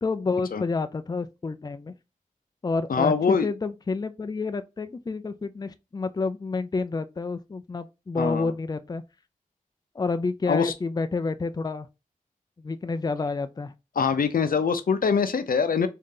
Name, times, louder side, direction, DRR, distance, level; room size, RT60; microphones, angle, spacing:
voice 1, 0.0-1.9 2.6-9.0 9.9-11.9 12.6-13.7, left 3 dB, 30° left, 0.4 m, -29 dB
voice 2, 2.9-3.5 8.2-8.5 10.5-10.7 14.0-15.9, left 5 dB, 85° left, 0.5 m, -23 dB
3.7 x 2.8 x 3.7 m
wide cardioid pair, 65°, 14 cm